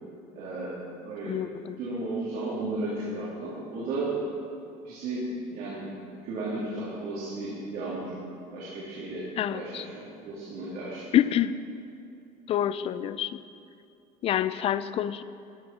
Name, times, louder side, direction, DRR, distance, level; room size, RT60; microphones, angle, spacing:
voice 1, 0.3-0.8 1.0-1.3 1.8-4.1 4.8-5.9 6.2-8.1 8.5-11.1, right 2 dB, 70° right, -8 dB, 3.1 m, -34 dB
voice 2, 1.3-1.8 9.4-9.9 11.1-11.5 12.5-13.4 14.2-15.2, left 11 dB, 40° left, 14 dB, 0.4 m, -27 dB
13.5 x 6.3 x 7.0 m, 2.6 s
cardioid pair, 140°, 16 cm